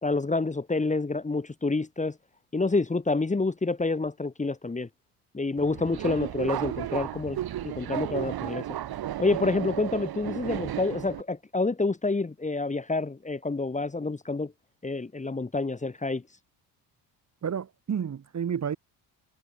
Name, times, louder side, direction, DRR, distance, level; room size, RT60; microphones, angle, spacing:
voice 1, 0.0-2.2 2.5-4.9 5.3-8.6 9.2-14.5 14.8-16.2, left 3 dB, 15° left, 1.6 m, -28 dB
Subway metro underground, 5.6-11.2, right 12 dB, 55° right, 1.7 m, -33 dB
voice 2, 17.4-18.8, right 8 dB, 35° right, 1.8 m, -30 dB
supercardioid pair, 75°, 45 cm